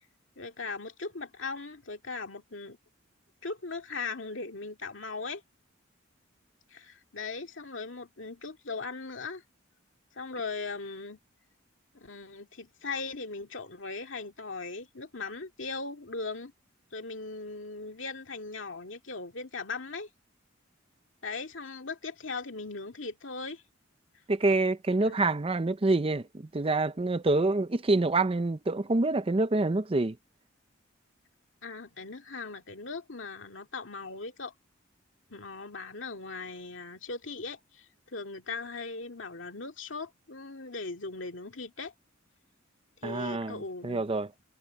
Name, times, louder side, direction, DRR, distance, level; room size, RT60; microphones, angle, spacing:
voice 1, 0.4-2.8 3.4-5.4 6.7-9.4 10.2-11.2 11.9-16.5 16.9-20.1 21.2-23.6 25.0-25.2 31.6-34.5 35.3-41.9 43.0-44.0, left 4 dB, 65° left, 2.3 m, -39 dB
voice 2, 24.3-30.2 43.0-44.3, right 2 dB, 30° right, 0.6 m, -27 dB
head